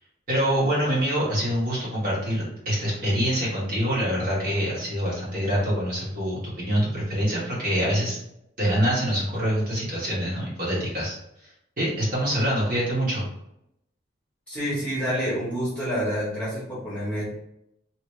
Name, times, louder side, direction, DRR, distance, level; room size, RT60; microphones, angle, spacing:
voice 1, 0.3-8.2 8.6-11.2 11.4-13.3, equal, 45° right, -7 dB, 1.3 m, -25 dB
voice 2, 14.5-17.2, equal, 5° left, -9 dB, 1.1 m, -28 dB
2.9 x 2.8 x 3.1 m, 0.80 s
head